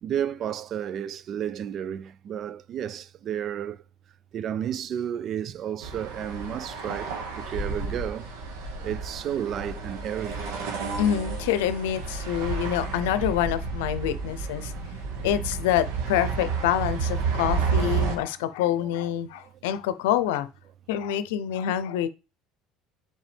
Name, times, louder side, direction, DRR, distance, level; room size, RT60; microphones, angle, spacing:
voice 1, 0.0-3.8 4.3-8.3 8.8-11.1 14.4-14.8 15.3-15.4 18.8-18.9, right 9 dB, 50° right, 0.4 m, -32 dB
sound 1, 5.8-18.2, right 5 dB, 80° right, 1.7 m, -31 dB
voice 2, 11.0-14.7 15.2-20.5 20.9-22.1, left 11 dB, 85° left, 0.6 m, -26 dB
7.3 x 4.6 x 3.4 m
supercardioid pair, 80°, 0 cm